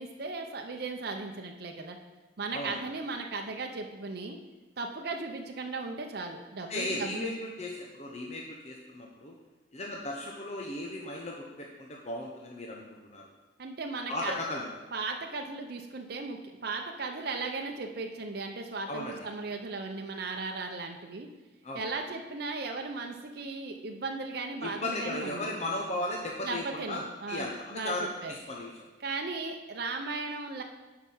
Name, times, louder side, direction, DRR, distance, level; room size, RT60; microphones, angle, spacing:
voice 1, 0.0-2.0 2.4-4.4 4.8-7.3 13.6-14.4 14.9-21.3 21.7-25.5 26.4-28.3 29.0-30.6, right 3 dB, 55° right, 3 dB, 0.7 m, -36 dB
voice 2, 6.7-9.3 9.7-13.3 14.1-14.7 18.9-19.2 21.6-21.8 24.6-27.0 27.3-28.7, left 1 dB, 35° left, -1 dB, 0.9 m, -36 dB
9.9 x 4.8 x 5.5 m, 1.2 s
head